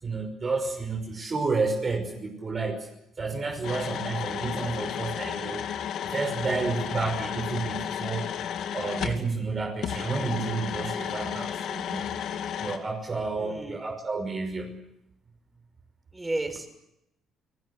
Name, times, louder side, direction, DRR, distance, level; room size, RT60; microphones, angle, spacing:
voice 1, 0.0-2.9 3.2-5.6 6.0-8.3 8.7-12.1 12.6-14.8, right 4 dB, 35° right, 3 dB, 5.8 m, -30 dB
sound 1, 3.6-9.2 9.8-12.8, left 9 dB, 70° left, 3.0 m, -33 dB
voice 2, 13.4-13.8 16.1-16.7, right 2 dB, 15° right, 7 dB, 6.4 m, -32 dB
29.5 x 19.5 x 8.2 m, 0.81 s
cardioid pair, 105°, 0 cm